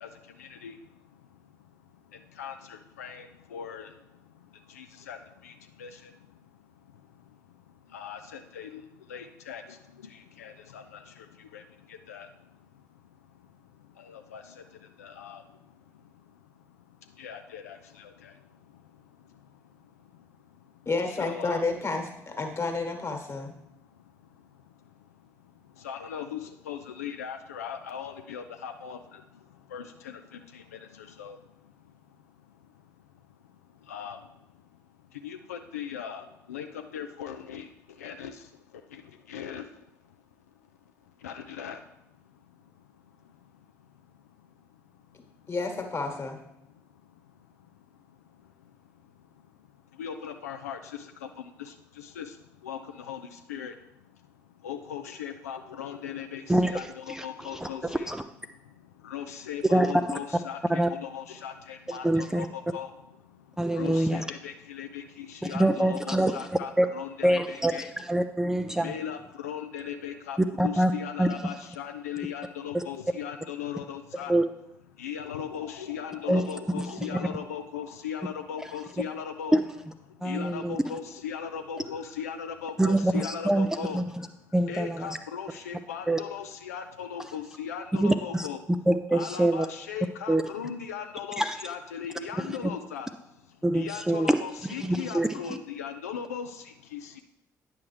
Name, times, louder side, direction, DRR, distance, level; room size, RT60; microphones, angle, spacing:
voice 1, 0.4-0.8 2.4-3.9 4.7-5.2 5.4-5.5 5.8-6.1 7.9-8.8 9.1-9.8 10.0-11.3 11.5-11.6 11.9-12.3 14.0-14.4 15.0-15.4 17.2-18.3 21.1-21.6 25.8-29.2 29.7-30.2 30.5-31.4 33.9-34.2 35.2-37.7 38.0-38.4 38.9-39.0 39.3-39.6 41.2-41.8 50.0-52.3 52.6-53.7 54.6-58.1 59.0-62.9 63.7-67.9 68.8-74.3 75.0-79.6 80.2-84.0 84.7-88.6 89.1-93.1 93.7-97.2, left 8 dB, 75° left, 6 dB, 0.4 m, -38 dB
voice 2, 20.8-23.5 45.5-46.4, left 3 dB, 30° left, 4 dB, 1.4 m, -30 dB
voice 3, 56.5-58.2 59.7-59.9 60.7-60.9 61.9-62.5 63.6-64.2 65.5-66.9 67.2-68.9 70.6-70.9 71.2-71.3 72.7-72.8 74.3-74.4 76.3-76.4 76.8-76.9 77.1-77.3 79.5-79.6 80.2-80.8 82.8-84.0 84.5-85.2 86.1-86.2 88.0-88.5 88.9-89.7 90.3-90.4 91.4-91.6 92.4-92.6 93.6-95.6, right 1 dB, 5° right, 8 dB, 0.4 m, -25 dB
9.5 x 5.8 x 3.2 m, 0.82 s
figure-of-eight pair, 45°, 8 cm